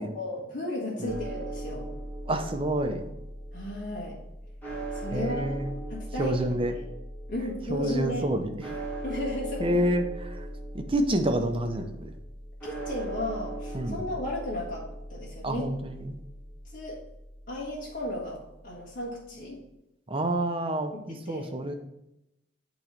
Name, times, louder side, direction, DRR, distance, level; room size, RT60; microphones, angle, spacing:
voice 1, 0.0-1.9 3.5-4.2 4.9-5.5 5.9-6.8 7.3-8.3 9.0-9.8 12.6-15.7 16.7-17.0 17.5-19.6 20.9-21.5, left 1 dB, 50° left, -5 dB, 1.5 m, -35 dB
sound 1, 1.1-18.9, right 1 dB, 10° left, 1.7 m, -39 dB
voice 2, 2.3-3.0 5.1-5.7 6.2-6.7 7.7-8.5 9.6-10.0 10.4-10.5 10.7-12.1 13.7-14.0 15.4-16.2 20.1-21.7, right 1 dB, 30° right, 5 dB, 0.7 m, -28 dB
8.6 x 3.1 x 5.1 m, 0.87 s
head